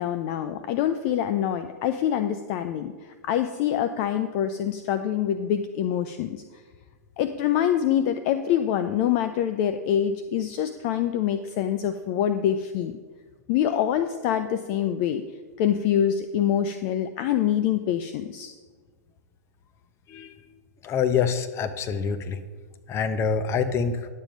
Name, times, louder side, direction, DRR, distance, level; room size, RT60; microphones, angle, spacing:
voice 1, 0.0-6.4 7.2-13.0 13.5-15.3 15.6-18.5, left 10 dB, 45° left, 9 dB, 0.5 m, -25 dB
voice 2, 20.1-20.4 20.8-22.4 22.9-24.1, left 6 dB, 30° left, 10 dB, 0.9 m, -26 dB
10.5 x 7.4 x 5.2 m, 1.5 s
hypercardioid pair, 110°, 9 cm